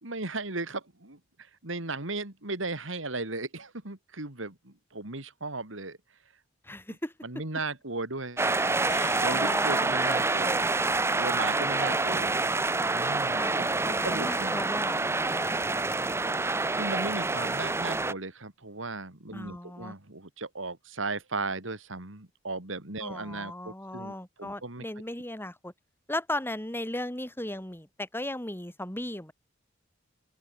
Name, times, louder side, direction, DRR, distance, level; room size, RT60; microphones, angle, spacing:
voice 1, 0.0-1.2 1.6-6.0 7.2-8.8 9.2-10.6 11.2-12.3 12.9-14.6 16.2-24.8, right 3 dB, 70° right, 3.3 m, -36 dB
voice 2, 6.6-7.1 9.3-9.9 13.4-13.6 13.9-15.6 19.3-19.9 23.0-25.7 26.1-29.3, left 1 dB, 10° left, 6.1 m, -36 dB
sound 1, 8.4-18.1, right 3 dB, 15° right, 0.5 m, -27 dB
sound 2, 8.9-12.7, left 6 dB, 40° left, 7.3 m, -50 dB
open air
head